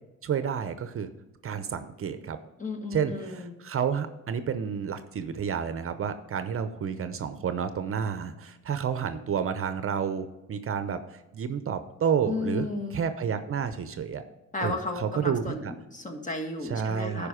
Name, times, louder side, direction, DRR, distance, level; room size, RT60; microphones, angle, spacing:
voice 1, 0.2-1.1 1.4-2.4 2.9-12.7 12.9-14.2 14.6-15.7 16.6-17.3, right 7 dB, 45° right, 10 dB, 0.7 m, -30 dB
voice 2, 2.6-3.5 12.2-13.0 14.5-17.3, left 3 dB, 25° left, 3 dB, 1.6 m, -33 dB
11.0 x 5.1 x 5.0 m, 1.0 s
cardioid pair, 90°, 30 cm